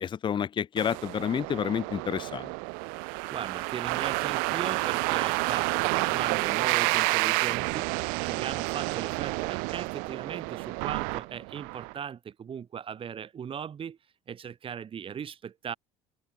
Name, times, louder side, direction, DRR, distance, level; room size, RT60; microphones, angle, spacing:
voice 1, 0.0-2.5, left 8 dB, 35° left, 0.6 m, -29 dB
sound 1, 0.8-11.9, right 34 dB, 75° right, 0.8 m, -30 dB
voice 2, 3.3-14.0 14.3-15.7, right 8 dB, 40° right, 2.1 m, -38 dB
supercardioid pair, 85°, 15 cm